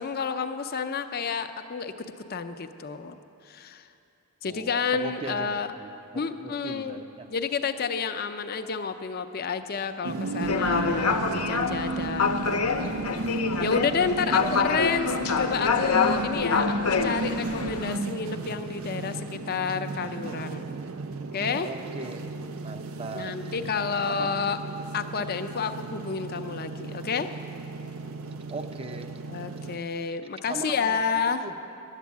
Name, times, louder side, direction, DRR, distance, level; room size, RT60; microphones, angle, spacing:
voice 1, 0.0-3.2 3.5-3.9 4.4-5.7 6.1-7.0 7.3-13.1 13.6-20.6 21.3-21.7 23.1-24.6 24.9-27.3 29.3-31.5, left 5 dB, 45° left, 9 dB, 0.5 m, -30 dB
voice 2, 4.5-7.3 14.2-14.5 21.6-22.2 22.6-23.4 24.1-24.3 28.5-29.1 30.5-31.0 31.4-31.6, right 3 dB, 25° right, 7 dB, 0.6 m, -38 dB
sound 1, 10.0-29.8, right 2 dB, 70° right, 0.5 m, -34 dB
sound 2, 10.4-18.0, left 5 dB, 85° left, 0.7 m, -27 dB
11.0 x 8.2 x 9.5 m, 2.7 s
head